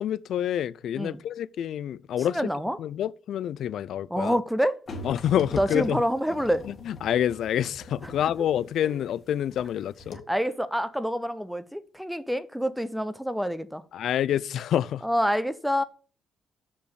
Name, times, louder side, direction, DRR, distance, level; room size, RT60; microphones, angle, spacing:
voice 1, 0.0-2.4 2.8-4.3 5.0-6.0 6.9-10.2 13.9-15.0, left 10 dB, 70° left, 0.4 m, -27 dB
voice 2, 2.3-2.8 4.1-4.8 5.5-6.6 8.0-8.1 10.3-13.8 15.0-15.8, equal, ahead, 0.7 m, -27 dB
sound 1, 4.9-9.7 10.0-10.2, left 1 dB, 45° left, 1.7 m, -42 dB
6.3 x 5.7 x 6.3 m
cardioid pair, 90°, 0 cm